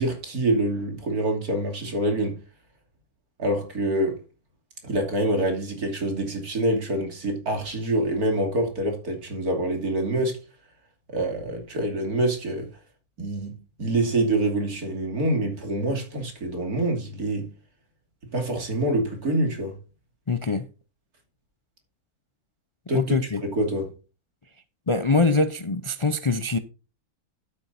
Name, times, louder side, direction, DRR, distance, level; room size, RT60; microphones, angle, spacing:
voice 1, 0.0-2.4 3.4-4.2 4.8-10.4 11.1-12.7 13.2-13.5 13.8-17.5 18.3-19.8 22.9-23.9, right 1 dB, 80° right, 3.2 m, -26 dB
voice 2, 20.3-20.6 22.9-23.4 24.9-26.6, left 3 dB, 45° left, 0.4 m, -23 dB
12.0 x 9.1 x 2.6 m
omnidirectional pair, 1.6 m